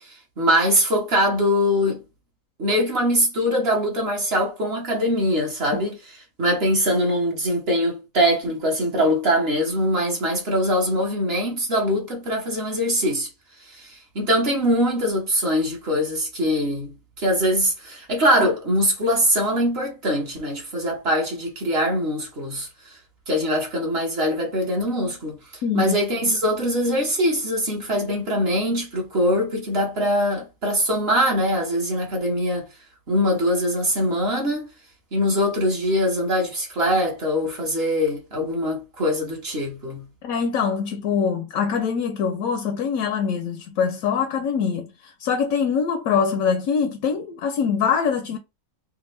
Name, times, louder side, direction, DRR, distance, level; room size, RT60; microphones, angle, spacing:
voice 1, 0.0-2.0 2.6-6.0 6.4-13.3 13.6-23.0 23.3-25.4 25.7-32.7 33.1-34.7 35.1-40.1, equal, 45° right, 1.3 m, -22 dB
voice 2, 25.6-26.0 40.2-48.4, left 6 dB, 70° left, 1.0 m, -23 dB
3.5 x 2.4 x 3.1 m
omnidirectional pair, 1.7 m